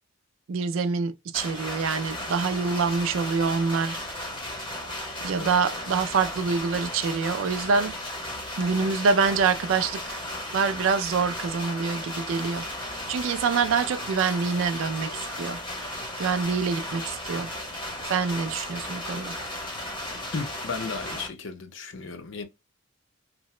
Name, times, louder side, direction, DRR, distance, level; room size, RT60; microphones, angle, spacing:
voice 1, 0.5-4.0 5.2-8.0 8.6-10.2 10.5-12.6 13.1-15.6 16.2-17.5 18.0-19.4, right 5 dB, 70° right, 0.4 m, -26 dB
sound 1, 1.3-21.3, left 1 dB, 25° left, 0.9 m, -35 dB
voice 2, 5.4-5.8 14.5-14.7 15.0-15.3 19.1-19.4 20.3-22.4, left 4 dB, 60° left, 0.5 m, -36 dB
2.8 x 2.0 x 3.1 m
head